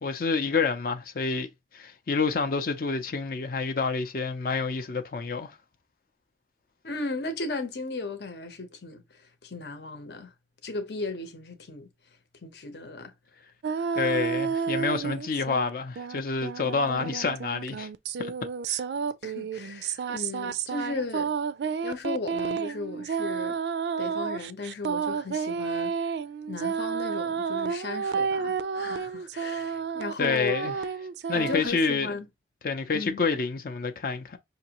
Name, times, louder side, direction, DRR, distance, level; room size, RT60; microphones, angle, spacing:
voice 1, 0.0-5.5 14.0-17.9 18.2-18.3 18.7-18.8 30.2-30.8 31.3-32.2 32.6-34.4, left 4 dB, 55° left, 0.5 m, -28 dB
voice 2, 6.8-10.3 10.6-11.9 12.4-13.4 19.2-21.3 21.8-23.6 24.0-25.9 26.5-30.6 31.3-32.3 32.9-33.2, left 3 dB, 70° left, 0.9 m, -36 dB
sound 1, 13.6-15.7 16.0-31.7, right 6 dB, 70° right, 0.3 m, -31 dB
5.8 x 2.6 x 2.9 m
head